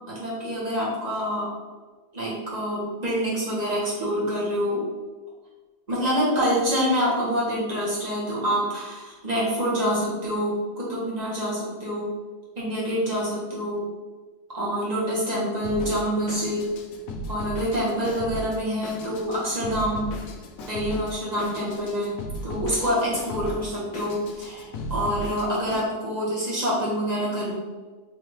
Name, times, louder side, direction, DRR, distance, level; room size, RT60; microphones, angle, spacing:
voice 1, 0.1-1.5 2.1-4.8 5.9-12.1 12.6-13.8 14.5-16.6 17.3-20.0 20.7-22.1 22.4-27.5, equal, 25° right, -7 dB, 1.2 m, -26 dB
Drum kit, 15.6-25.9, left 1 dB, 80° left, 0.7 m, -36 dB
4.7 x 2.7 x 3.1 m, 1.3 s
omnidirectional pair, 2.0 m